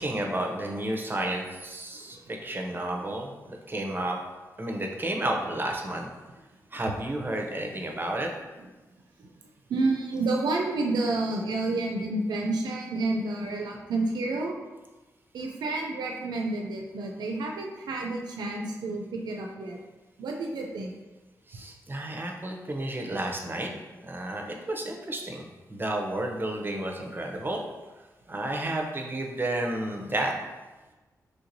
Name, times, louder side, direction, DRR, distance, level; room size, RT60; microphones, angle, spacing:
voice 1, 0.0-4.2 4.6-6.1 6.7-8.3 21.5-23.7 24.0-27.6 28.3-30.3, right 1 dB, 30° right, 2 dB, 0.6 m, -31 dB
voice 2, 9.7-14.5 15.3-19.8 20.2-20.9, right 2 dB, 85° right, 1 dB, 0.4 m, -29 dB
3.2 x 2.8 x 2.6 m, 1.2 s
cardioid pair, 55°, 7 cm